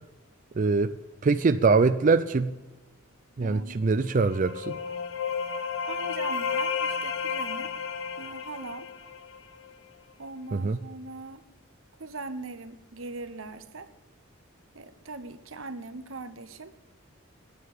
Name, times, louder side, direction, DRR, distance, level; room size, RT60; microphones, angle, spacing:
voice 1, 0.6-0.9 1.2-2.5 3.4-4.8 10.5-10.8, right 4 dB, 40° right, 0.4 m, -23 dB
voice 2, 3.4-3.8 5.9-7.7 8.2-8.9 10.2-11.4 12.0-13.9 14.7-16.7, right 3 dB, 85° right, 1.0 m, -40 dB
sound 1, 4.0-9.7, left 5 dB, 75° left, 1.0 m, -32 dB
9.6 x 9.6 x 8.8 m
head